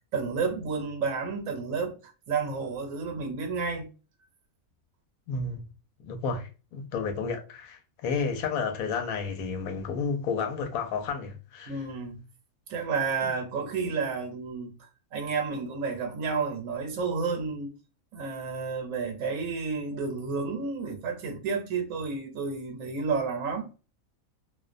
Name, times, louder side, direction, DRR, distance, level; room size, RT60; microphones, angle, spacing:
voice 1, 0.1-2.0 2.3-3.9 11.7-12.2 12.7-14.7 15.1-17.7 18.1-23.7, right 5 dB, 75° right, 1.0 m, -31 dB
voice 2, 5.3-5.6 6.0-11.8, left 5 dB, 85° left, 1.0 m, -31 dB
2.5 x 2.1 x 2.4 m
omnidirectional pair, 1.5 m